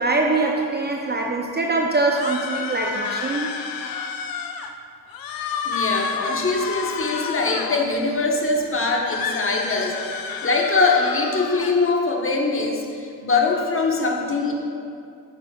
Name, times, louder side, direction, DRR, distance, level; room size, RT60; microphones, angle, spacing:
voice 1, 0.0-3.5, right 3 dB, 20° right, 1 dB, 0.6 m, -23 dB
sound 1, 2.1-4.7 5.1-7.9 9.0-11.8, left 6 dB, 50° left, 0.7 m, -30 dB
voice 2, 5.6-14.5, left 3 dB, 25° left, 0 dB, 1.3 m, -22 dB
9.5 x 7.5 x 2.4 m, 2.4 s
hypercardioid pair, 45°, 46 cm